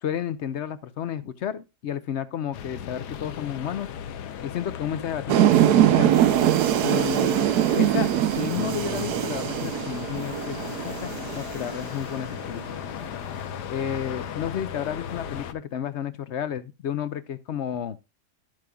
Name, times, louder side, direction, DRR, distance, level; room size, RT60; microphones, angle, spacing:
voice 1, 0.0-3.9 4.4-6.1 6.8-12.8 13.7-18.0, left 9 dB, 60° left, 0.7 m, -32 dB
sound 1, 2.5-15.5, left 9 dB, 80° left, 1.4 m, -36 dB
sound 2, 5.3-12.3, right 12 dB, 75° right, 1.2 m, -22 dB
12.0 x 7.6 x 2.2 m
omnidirectional pair, 1.7 m